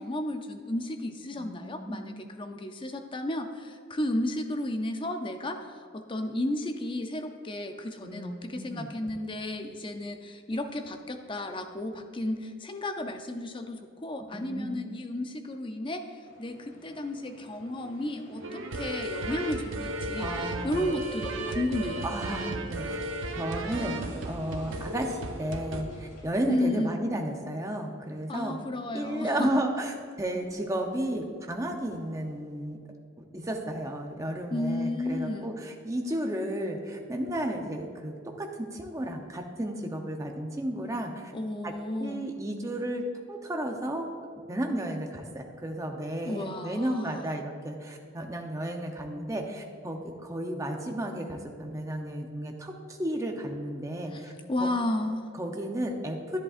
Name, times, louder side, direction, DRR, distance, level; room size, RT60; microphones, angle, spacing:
voice 1, 0.0-22.1 26.5-27.1 28.3-29.5 34.5-35.5 41.3-42.3 46.3-47.3 54.1-55.3, left 1 dB, 25° left, 6 dB, 0.5 m, -33 dB
voice 2, 1.3-2.5 8.0-8.9 14.3-14.7 20.1-20.9 22.0-23.0 23.3-28.6 28.9-32.8 33.2-41.3 41.6-41.7 42.0-44.1 44.5-54.3 54.6-54.7 55.4-56.4, right 1 dB, 15° right, 2 dB, 0.7 m, -33 dB
sound 1, 16.2-26.3, equal, 85° left, 2.1 m, -52 dB
sound 2, 18.4-25.8, right 2 dB, 65° right, 0.7 m, -35 dB
11.0 x 10.5 x 2.5 m, 2.1 s
head